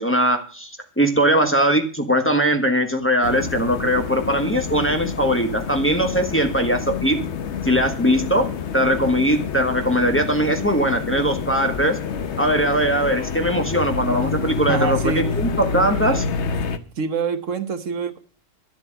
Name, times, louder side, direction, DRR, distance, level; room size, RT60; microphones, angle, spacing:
voice 1, 0.0-7.2 7.6-8.5 8.7-12.0 12.4-16.2, right 1 dB, 10° left, 1.5 m, -20 dB
sound 1, 3.2-16.8, left 6 dB, 65° left, 1.2 m, -28 dB
voice 2, 14.7-15.3 17.0-18.2, right 5 dB, 85° right, 1.5 m, -25 dB
12.0 x 7.5 x 7.8 m
omnidirectional pair, 1.3 m